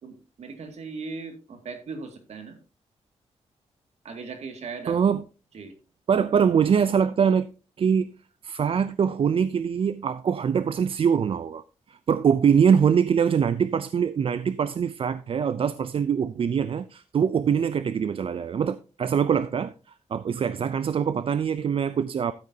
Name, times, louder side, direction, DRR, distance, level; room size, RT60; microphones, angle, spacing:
voice 1, 0.0-2.6 4.0-5.0 5.5-5.7, right 4 dB, 70° right, 2.3 m, -38 dB
voice 2, 4.9-5.2 6.1-7.5 7.8-8.1 8.4-11.6 11.9-19.7 20.1-22.3, right 7 dB, 50° right, 0.4 m, -23 dB
13.0 x 8.5 x 2.8 m
cardioid pair, 105°, 12 cm